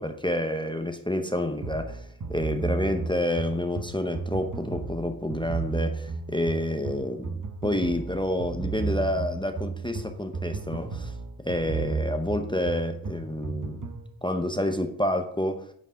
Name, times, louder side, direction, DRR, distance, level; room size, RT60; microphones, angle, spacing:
voice 1, 0.0-2.0 2.3-11.1 11.4-13.8 14.2-15.6, left 1 dB, 10° left, 0.7 m, -29 dB
sound 1, 1.6-14.1, right 4 dB, 40° right, 0.9 m, -33 dB
8.9 x 5.4 x 3.7 m
cardioid pair, 60°, 49 cm